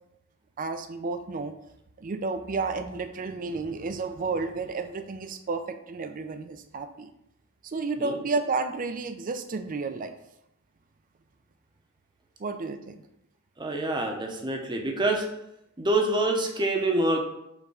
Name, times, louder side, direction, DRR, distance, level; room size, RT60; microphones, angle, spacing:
voice 1, 0.6-1.5 2.0-7.1 7.6-10.1 12.4-13.0, right 3 dB, 35° right, 8 dB, 0.4 m, -31 dB
voice 2, 13.6-15.3 15.8-17.2, right 2 dB, 20° right, 2 dB, 0.8 m, -26 dB
5.3 x 3.6 x 5.0 m, 0.81 s
head